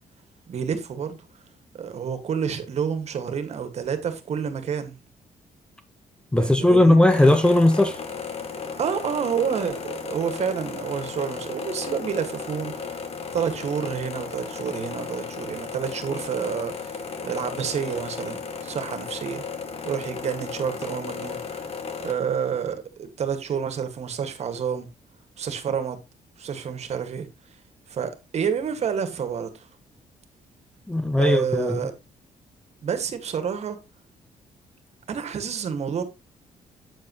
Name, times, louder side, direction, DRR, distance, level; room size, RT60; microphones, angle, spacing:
voice 1, 0.5-1.2 1.7-5.0 6.3-7.0 8.8-13.0 13.3-17.0 17.2-19.4 19.8-21.6 22.0-24.9 25.4-26.0 26.4-27.3 27.9-29.7 31.2-31.9 32.8-33.8 35.1-36.0, right 7 dB, 55° right, 1.9 m, -29 dB
voice 2, 6.3-8.0 30.9-31.8, left 1 dB, 5° left, 0.9 m, -18 dB
sound 1, 7.1-22.1, left 5 dB, 50° left, 1.9 m, -35 dB
8.7 x 7.8 x 3.0 m
cardioid pair, 110°, 13 cm